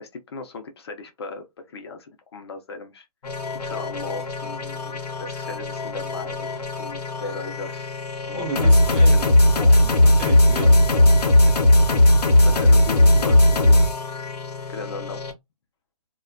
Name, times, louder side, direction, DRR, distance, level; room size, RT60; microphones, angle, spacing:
voice 1, 0.0-3.1 3.5-6.5 6.8-8.0 8.3-8.8 9.1-9.7 11.2-11.5 12.2-13.9 14.7-15.2, left 3 dB, 40° left, 0.5 m, -37 dB
sound 1, 3.2-15.3, left 1 dB, 80° left, 0.7 m, -18 dB
voice 2, 8.3-11.3, right 5 dB, 15° right, 0.5 m, -34 dB
2.3 x 2.2 x 2.4 m
hypercardioid pair, 150°, 20 cm